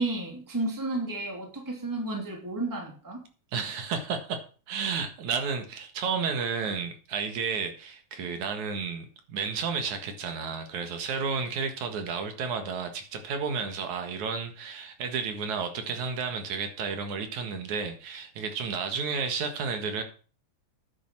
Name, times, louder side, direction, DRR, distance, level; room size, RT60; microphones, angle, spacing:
voice 1, 0.0-3.2, right 2 dB, 5° right, 1 dB, 2.5 m, -32 dB
voice 2, 3.5-4.4 4.7-20.0, right 5 dB, 65° right, 6 dB, 3.0 m, -32 dB
10.0 x 8.4 x 6.0 m, 0.38 s
omnidirectional pair, 3.6 m